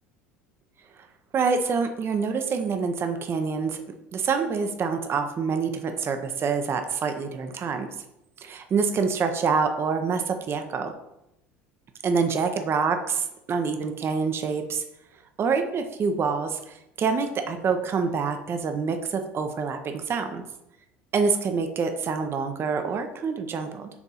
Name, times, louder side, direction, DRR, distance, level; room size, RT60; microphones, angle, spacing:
voice 1, 1.3-3.8 4.1-7.9 8.4-10.9 12.0-13.1 13.5-14.8 15.4-16.6 17.0-20.4 21.1-23.9, right 5 dB, 35° right, 6 dB, 0.8 m, -26 dB
7.0 x 3.5 x 4.2 m, 0.87 s
hypercardioid pair, 75°, 7 cm